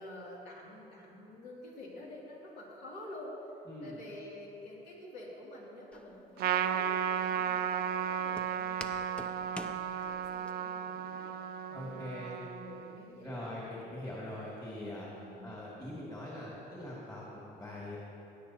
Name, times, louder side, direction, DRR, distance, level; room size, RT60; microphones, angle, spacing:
voice 1, 0.0-3.3 3.8-11.4 11.8-14.1 15.1-15.6, left 1 dB, 80° left, -4 dB, 2.8 m, -49 dB
voice 2, 3.7-4.0 11.7-12.4 13.2-15.1 15.4-18.0, left 1 dB, 25° left, -6 dB, 2.2 m, -42 dB
Walk footsteps, 5.9-10.5, left 1 dB, 5° left, 0.5 m, -48 dB
Trumpet, 6.4-13.1, right 9 dB, 65° right, 0.4 m, -34 dB
16.5 x 9.1 x 2.9 m, 2.9 s
cardioid pair, 110°, 17 cm